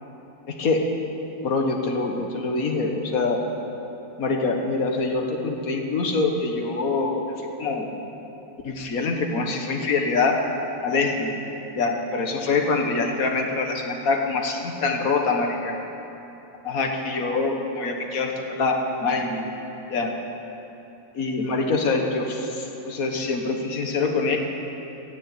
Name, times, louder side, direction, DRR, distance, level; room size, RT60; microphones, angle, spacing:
voice 1, 0.5-0.8 1.4-3.4 4.2-7.3 7.6-7.9 8.6-10.4 10.8-11.3 11.8-15.8 16.6-19.4 19.9-20.2 21.2-24.4, left 3 dB, 70° left, 3 dB, 1.8 m, -24 dB
16.0 x 7.7 x 8.6 m, 3.0 s
omnidirectional pair, 1.6 m